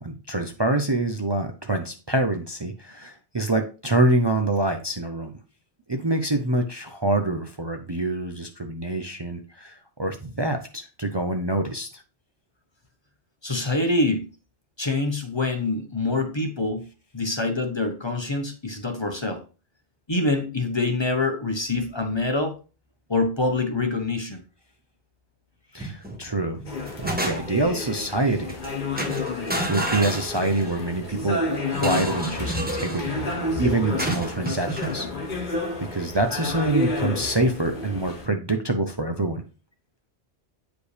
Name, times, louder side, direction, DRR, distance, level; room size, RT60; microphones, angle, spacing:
voice 1, 0.0-5.3 5.9-12.0 25.7-26.6 27.0-28.6 29.7-33.2 33.6-35.5 35.9-39.4, right 2 dB, 30° right, 5 dB, 0.5 m, -26 dB
voice 2, 13.4-14.3 14.8-16.9 17.1-19.4 20.1-22.5 23.1-24.4, left 2 dB, 25° left, 5 dB, 0.9 m, -25 dB
sound 1, 25.8-26.2 26.6-27.7 28.5-28.7 29.0-30.8 31.7-33.1 34.0-35.0, right 1 dB, 10° right, 1.0 m, -30 dB
sound 2, 26.6-38.3, left 2 dB, 45° left, 1.3 m, -30 dB
8.2 x 5.0 x 3.3 m, 0.34 s
omnidirectional pair, 1.1 m